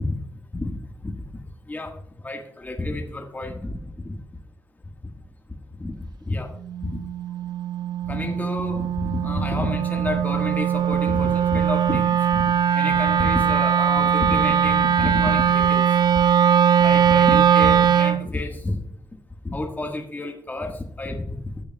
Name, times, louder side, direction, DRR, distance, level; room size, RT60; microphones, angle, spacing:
voice 1, 0.5-1.1 1.7-1.9 2.2-3.8 4.0-4.2 5.8-5.9 6.3-6.5 6.8-7.0 8.1-12.4 12.7-15.8 16.8-18.8 19.4-21.3, left 2 dB, 25° left, 2 dB, 1.5 m, -29 dB
Wind instrument woodwind instrument, 6.7-18.3, right 8 dB, 70° right, 0.4 m, -20 dB
14.5 x 6.7 x 2.2 m, 0.70 s
cardioid pair, 70°, 7 cm